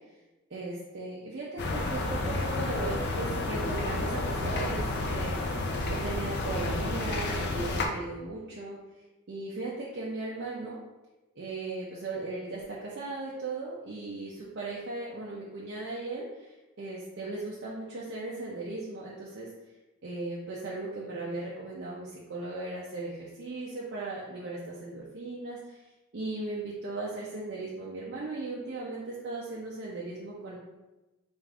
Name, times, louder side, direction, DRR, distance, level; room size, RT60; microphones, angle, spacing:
voice 1, 0.5-5.5 5.9-8.8 9.3-10.8 11.4-19.5 20.0-25.8 26.1-30.6, right 2 dB, 50° right, -5 dB, 0.5 m, -37 dB
sound 1, 1.6-7.9, left 2 dB, 50° left, 0.4 m, -31 dB
3.4 x 2.5 x 3.5 m, 1.1 s
head